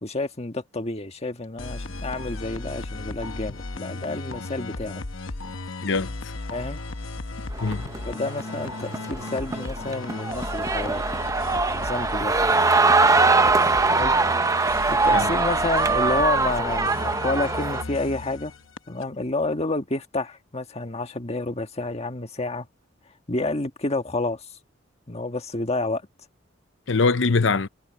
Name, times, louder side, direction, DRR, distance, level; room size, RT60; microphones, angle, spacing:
voice 1, 0.0-5.0 6.5-6.8 8.0-11.0 11.7-12.6 13.9-14.1 14.9-18.5 18.9-22.7 23.3-24.4 25.1-26.0, left 2 dB, 35° left, 1.6 m, -29 dB
sound 1, 1.6-19.0, left 2 dB, 90° left, 1.1 m, -35 dB
voice 2, 5.8-6.3 7.6-7.9 15.1-15.3 26.9-27.7, left 4 dB, 65° left, 0.8 m, -23 dB
sound 2, 7.6-17.8, right 3 dB, 15° right, 0.7 m, -22 dB
head